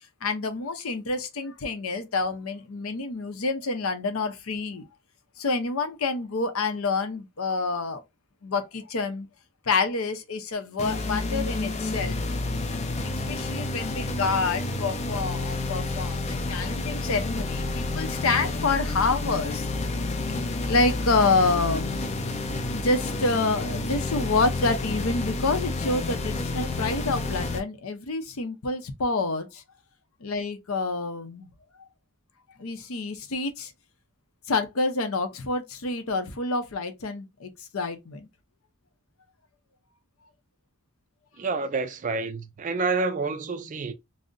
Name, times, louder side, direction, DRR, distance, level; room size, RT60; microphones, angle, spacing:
voice 1, 0.2-4.9 5.4-8.0 8.4-9.3 9.7-12.2 13.0-19.7 20.7-22.0 22.5-29.6 30.2-31.5 32.6-33.7 34.5-38.3, left 3 dB, 85° left, 0.6 m, -28 dB
sound 1, 10.8-27.6, left 2 dB, 30° left, 0.4 m, -30 dB
voice 2, 41.4-43.9, right 3 dB, 35° right, 0.4 m, -28 dB
2.5 x 2.0 x 3.7 m
head